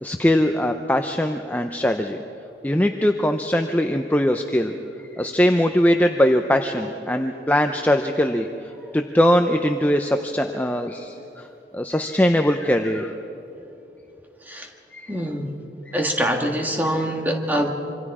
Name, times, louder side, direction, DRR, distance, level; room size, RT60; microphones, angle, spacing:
voice 1, 0.0-2.2 2.6-4.7 5.1-11.5 11.7-13.1 14.9-15.2 15.9-16.0, equal, 10° left, 5 dB, 0.6 m, -21 dB
voice 2, 15.1-15.5 15.9-17.7, equal, 10° right, 2 dB, 1.7 m, -24 dB
26.5 x 25.0 x 4.9 m, 3.0 s
head